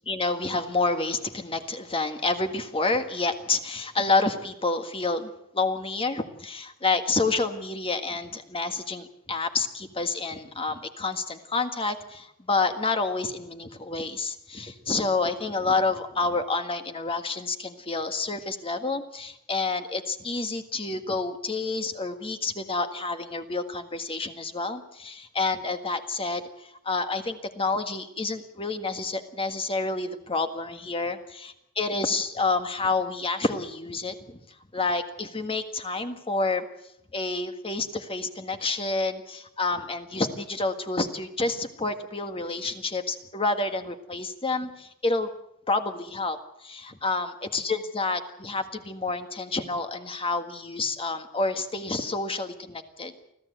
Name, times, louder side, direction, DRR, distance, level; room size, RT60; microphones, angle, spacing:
voice 1, 0.1-34.4 34.7-36.6 37.1-45.3 45.7-53.1, left 3 dB, 25° left, 7 dB, 1.7 m, -29 dB
25.0 x 15.5 x 8.0 m, 0.80 s
head